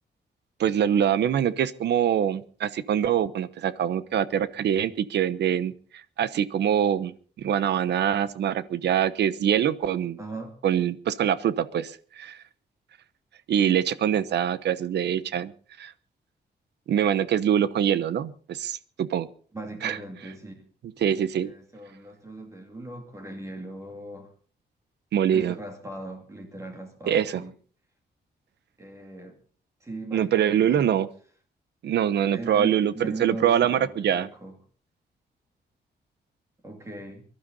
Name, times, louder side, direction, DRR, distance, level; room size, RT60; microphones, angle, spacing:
voice 1, 0.6-10.2 10.6-12.4 13.5-15.5 15.8-15.9 16.9-19.3 19.8-20.0 21.0-21.5 25.1-25.5 27.1-27.4 30.1-31.1 31.8-34.3, right 9 dB, 90° right, 15 dB, 1.0 m, -24 dB
voice 2, 10.2-10.5 19.5-20.7 21.4-24.3 25.3-27.5 28.8-29.4 29.8-31.0 32.3-34.6 36.6-37.3, right 2 dB, 15° right, 3 dB, 2.6 m, -39 dB
23.5 x 12.0 x 4.1 m, 0.43 s
wide cardioid pair, 175°, 17 cm